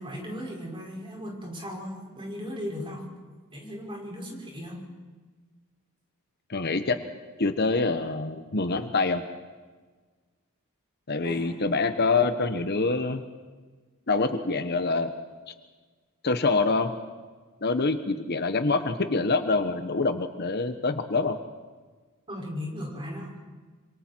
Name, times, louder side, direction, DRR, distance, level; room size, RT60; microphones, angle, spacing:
voice 1, 0.0-3.0 3.5-4.8 11.2-11.6 22.3-23.3, equal, 25° right, -1 dB, 5.9 m, -37 dB
voice 2, 6.5-6.9 7.4-9.2 11.1-13.2 14.1-15.1 16.2-16.9 17.6-21.4, left 3 dB, 50° left, 8 dB, 1.1 m, -25 dB
27.0 x 25.5 x 4.6 m, 1.4 s
head